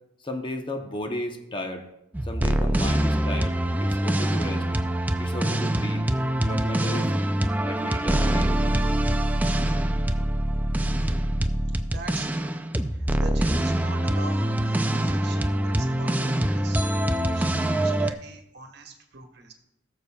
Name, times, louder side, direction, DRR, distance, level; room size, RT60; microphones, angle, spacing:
voice 1, 0.2-1.9 2.2-4.7 5.2-6.1 6.4-7.1 7.6-8.6, left 1 dB, 25° left, 5 dB, 0.8 m, -34 dB
sound 1, 2.1-18.1, right 1 dB, 10° right, 0.4 m, -24 dB
voice 2, 11.9-12.6 12.9-16.9 17.3-19.5, right 3 dB, 60° right, 4 dB, 1.2 m, -42 dB
18.5 x 6.8 x 2.3 m, 0.85 s
head